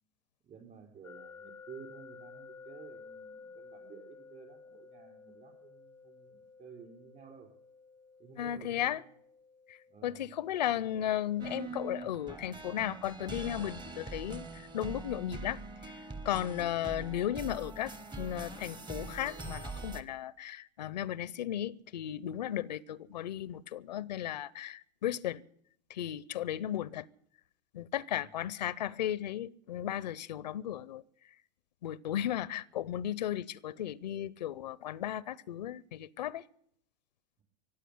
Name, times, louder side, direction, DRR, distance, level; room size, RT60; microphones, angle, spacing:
voice 1, 0.4-7.5 8.2-9.0 9.9-10.3 26.4-26.5 28.2-28.4, right 6 dB, 35° right, 4.4 m, -53 dB
sound 1, 1.0-13.9, left 4 dB, 10° left, 0.5 m, -55 dB
voice 2, 8.4-9.0 9.7-25.4 25.9-27.1 27.7-31.0 31.8-36.4, left 11 dB, 85° left, 0.5 m, -35 dB
sound 2, 11.4-20.0, right 3 dB, 20° right, 1.0 m, -43 dB
15.0 x 8.3 x 10.0 m
hypercardioid pair, 95°, 21 cm